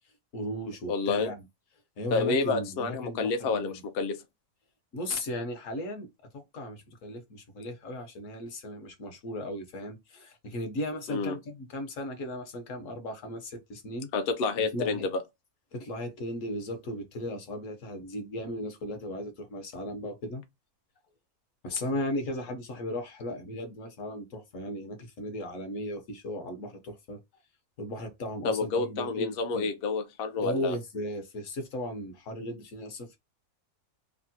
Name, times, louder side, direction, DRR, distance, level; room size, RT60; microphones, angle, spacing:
voice 1, 0.3-1.4 2.0-3.8 4.9-6.1 6.3-14.1 14.7-15.1 15.7-20.4 21.6-27.2 27.8-29.7 30.4-33.2, left 1 dB, 60° left, 1.1 m, -36 dB
voice 2, 0.9-1.3 2.1-4.2 11.1-11.4 14.1-15.0 28.4-30.8, left 4 dB, 85° left, 0.5 m, -29 dB
3.4 x 2.1 x 2.6 m
omnidirectional pair, 1.6 m